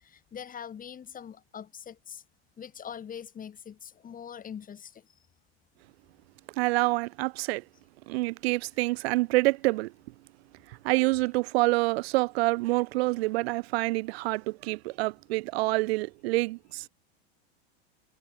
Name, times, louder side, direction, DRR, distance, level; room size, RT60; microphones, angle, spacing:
voice 1, 0.0-2.2 2.6-5.1 8.8-8.9, left 8 dB, 25° left, 4.9 m, -43 dB
voice 2, 6.6-7.6 8.1-9.9 10.7-16.9, right 22 dB, 70° right, 1.1 m, -27 dB
supercardioid pair, 125°, 32 cm